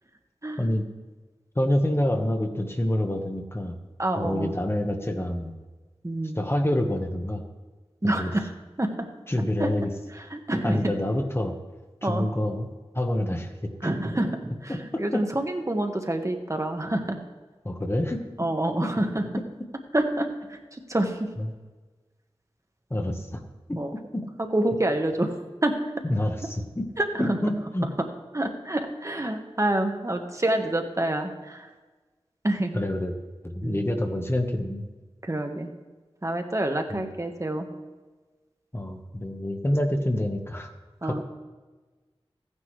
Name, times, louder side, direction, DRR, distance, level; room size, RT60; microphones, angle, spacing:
voice 1, 1.5-3.7 4.2-5.5 6.3-7.4 8.0-8.3 9.3-9.9 10.6-11.5 12.0-12.7 12.9-13.5 14.7-15.2 17.6-18.2 18.8-18.9 19.4-19.5 21.4-21.5 22.9-23.4 23.7-23.8 24.1-24.2 26.0-26.9 27.2-27.9 32.7-33.2 33.4-34.9 36.9-37.0 38.7-40.7 41.0-41.2, left 1 dB, 25° left, 4 dB, 1.2 m, -27 dB
voice 2, 4.0-4.6 6.0-6.4 8.0-8.5 8.8-8.9 9.6-9.7 10.1-11.0 12.0-12.3 13.8-17.2 18.4-19.3 19.9-21.3 23.8-23.9 24.5-25.7 27.0-27.4 28.3-31.7 32.4-32.8 33.6-33.9 35.2-35.7 36.2-37.7 41.0-41.2, right 1 dB, 30° right, 5 dB, 1.3 m, -27 dB
14.5 x 9.8 x 3.2 m, 1.3 s
wide cardioid pair, 55°, 10 cm